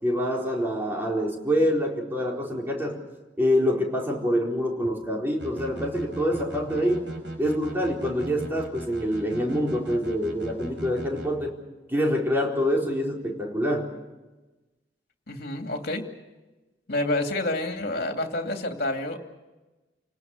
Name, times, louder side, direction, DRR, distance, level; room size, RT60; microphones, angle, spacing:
voice 1, 0.0-3.0 3.4-7.1 7.4-11.6 11.9-13.9, equal, 10° right, -1 dB, 4.3 m, -26 dB
sound 1, 5.4-11.3, right 1 dB, 80° right, 5.4 m, -38 dB
voice 2, 15.3-16.0 16.9-19.2, left 2 dB, 60° left, 4 dB, 2.7 m, -28 dB
29.5 x 19.0 x 6.7 m, 1.1 s
head